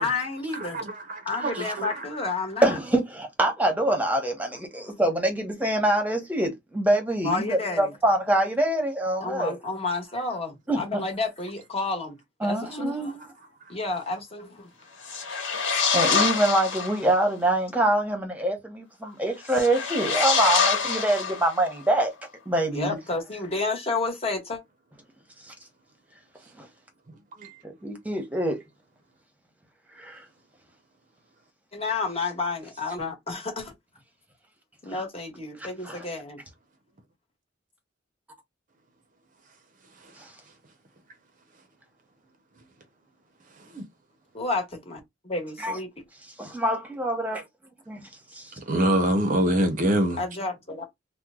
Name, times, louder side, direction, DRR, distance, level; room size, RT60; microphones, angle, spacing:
voice 1, 0.0-0.9 1.2-2.7 4.7-5.0 7.2-7.9 9.2-13.3 13.7-14.7 22.7-24.6 31.7-33.7 34.8-36.4 44.3-45.9 50.2-50.8, left 3 dB, 30° left, 1.0 m, -31 dB
voice 2, 0.6-2.0 27.4-27.6 43.7-43.8 48.7-50.2, right 1 dB, 45° right, 0.6 m, -25 dB
voice 3, 2.6-9.6 10.7-10.8 12.4-13.1 15.9-22.1 22.5-22.9 25.5-25.6 26.6-26.7 27.6-28.6 30.0-30.2 34.9-35.0 35.6-36.1 40.2-40.3 45.6-45.8 46.4-47.4 47.9-48.0 48.3-48.5, right 1 dB, 10° right, 0.9 m, -25 dB
sound 1, 15.0-17.1 19.4-21.8, left 5 dB, 80° left, 1.1 m, -25 dB
2.9 x 2.1 x 3.6 m
head